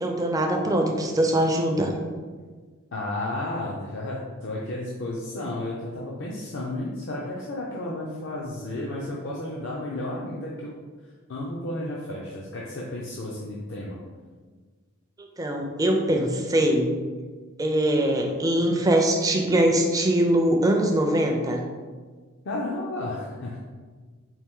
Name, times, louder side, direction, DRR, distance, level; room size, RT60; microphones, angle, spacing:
voice 1, 0.0-1.9 15.2-16.9 17.6-21.6, right 1 dB, 15° right, 2 dB, 0.4 m, -22 dB
voice 2, 2.9-10.7 11.3-14.0 22.4-23.6, left 1 dB, 55° left, -4 dB, 0.5 m, -32 dB
4.4 x 2.5 x 3.6 m, 1.5 s
head